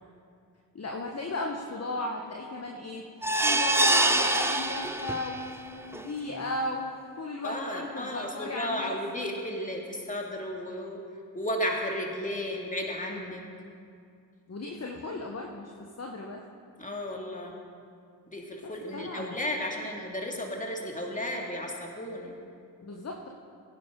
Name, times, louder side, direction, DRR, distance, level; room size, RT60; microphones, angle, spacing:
voice 1, 0.7-3.0 3.4-9.0 14.5-16.4 18.9-19.4 22.8-23.3, left 2 dB, 35° left, 1 dB, 1.3 m, -35 dB
sound 1, 3.2-5.5 5.9-6.0 6.4-6.5, right 2 dB, 5° right, 0.8 m, -25 dB
voice 2, 7.4-11.0 11.3-13.4 16.8-17.5 18.3-22.4, left 1 dB, 15° left, 0 dB, 2.5 m, -34 dB
16.5 x 10.5 x 3.9 m, 2.3 s
hypercardioid pair, 45°, 45 cm